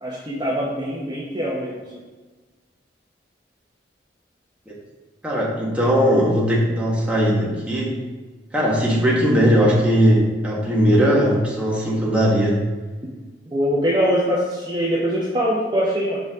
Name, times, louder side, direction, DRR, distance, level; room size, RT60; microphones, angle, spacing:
voice 1, 0.0-1.8 13.5-16.2, equal, 25° right, -6 dB, 0.9 m, -23 dB
voice 2, 5.2-7.9 8.5-12.6, equal, 5° right, -5 dB, 1.3 m, -19 dB
6.6 x 5.1 x 3.6 m, 1.3 s
head